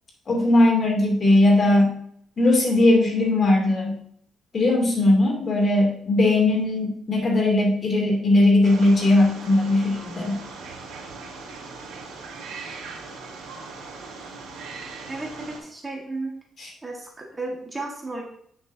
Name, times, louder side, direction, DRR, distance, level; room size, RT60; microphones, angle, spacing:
voice 1, 0.3-2.0 2.4-4.0 4.5-10.4 16.6-16.7, left 2 dB, 45° left, -1 dB, 3.0 m, -19 dB
Wild animals, 8.6-15.6, right 4 dB, 85° right, 2.9 m, -39 dB
voice 2, 15.1-16.3 16.8-18.2, right 2 dB, 25° right, 0 dB, 1.8 m, -33 dB
8.9 x 6.6 x 2.9 m, 0.66 s
cardioid pair, 90°, 0 cm